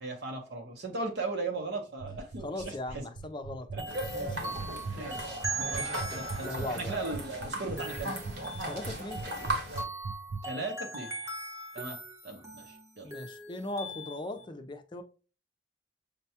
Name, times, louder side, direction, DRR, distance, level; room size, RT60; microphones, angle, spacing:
voice 1, 0.0-3.0 3.7-3.8 4.9-5.3 5.6-8.1 10.4-11.1 11.7-12.0 12.2-13.1, right 3 dB, 65° right, 0.7 m, -37 dB
sound 1, 2.0-10.4, right 4 dB, 45° right, 0.4 m, -38 dB
voice 2, 2.4-3.9 4.1-4.6 5.0-5.1 5.5-7.0 8.7-9.3 13.0-15.0, left 2 dB, 25° left, 0.5 m, -39 dB
sound 2, 3.8-14.4, right 2 dB, 15° right, 0.8 m, -40 dB
sound 3, 3.9-9.8, right 1 dB, 85° right, 1.4 m, -37 dB
6.6 x 2.2 x 2.7 m
head